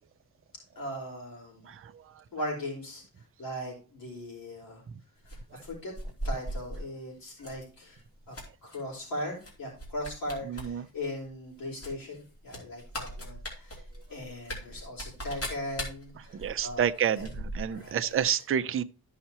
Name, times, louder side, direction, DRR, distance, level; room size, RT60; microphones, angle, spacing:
voice 1, 0.7-1.7 2.3-3.0 3.4-4.8 5.6-5.9 6.2-8.0 8.3-8.4 8.6-13.8 14.1-16.8 17.7-18.2, left 1 dB, 65° left, 4.7 m, -38 dB
sound 1, 5.2-6.8 7.4-7.6 8.0-8.8 9.4-9.5 9.8-10.7 11.0-11.1 11.8-17.9 18.2-18.3, equal, 40° left, 3.1 m, -39 dB
voice 2, 10.4-10.9 16.2-18.8, right 9 dB, 35° right, 0.5 m, -29 dB
13.5 x 5.7 x 2.9 m
wide cardioid pair, 175°, 37 cm